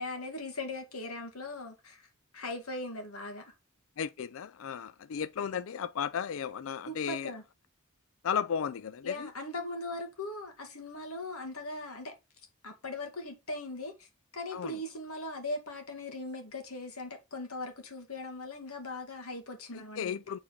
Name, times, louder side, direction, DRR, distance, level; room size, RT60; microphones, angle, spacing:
voice 1, 0.0-2.1 2.3-3.5 6.9-7.4 9.0-12.1 12.6-14.1 14.3-20.2, left 2 dB, 90° left, 2.2 m, -39 dB
voice 2, 4.0-7.3 8.2-9.3 14.5-14.8 19.7-20.4, left 7 dB, 70° left, 0.4 m, -34 dB
7.4 x 4.3 x 4.5 m
head